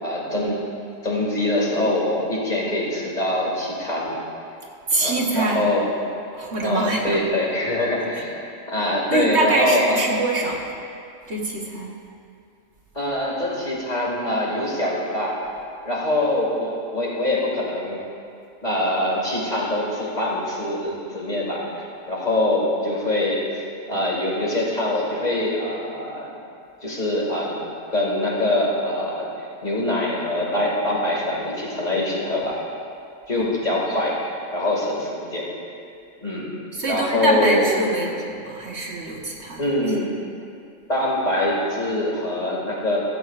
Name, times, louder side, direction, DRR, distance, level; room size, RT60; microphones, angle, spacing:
voice 1, 0.0-0.6 1.0-4.2 5.0-5.9 6.6-8.4 8.7-10.0 12.9-15.3 15.8-18.0 18.6-23.6 23.9-26.3 26.8-27.6 27.9-32.6 33.3-34.2 34.5-35.5 36.2-36.5 36.9-37.7 38.0-38.2 39.6-40.2 40.9-43.0, left 1 dB, 30° left, -4 dB, 2.4 m, -24 dB
voice 2, 4.9-5.7 6.3-7.2 9.1-10.7 11.3-12.0 33.4-33.5 36.7-39.7, right 2 dB, 55° right, -1 dB, 1.5 m, -24 dB
16.0 x 14.5 x 2.5 m, 2.4 s
omnidirectional pair, 1.4 m